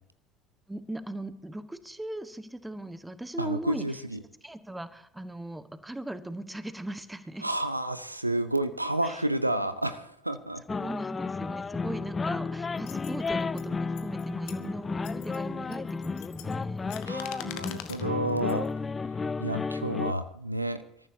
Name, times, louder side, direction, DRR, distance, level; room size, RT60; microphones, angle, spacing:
voice 1, 0.7-3.8 4.4-7.4 9.0-9.2 10.7-17.0, right 1 dB, 10° right, 12 dB, 1.3 m, -39 dB
voice 2, 3.4-4.2 7.4-10.6 17.1-18.7 19.4-20.8, right 1 dB, 90° right, 12 dB, 0.6 m, -30 dB
sound 1, 10.7-20.1, left 4 dB, 25° left, 0.4 m, -33 dB
sound 2, 12.8-13.7 14.0-14.7 15.0-15.4 15.7-18.1 18.5-18.7, left 13 dB, 60° left, 1.3 m, -44 dB
28.0 x 14.0 x 2.8 m, 0.70 s
figure-of-eight pair, 60°, 0 cm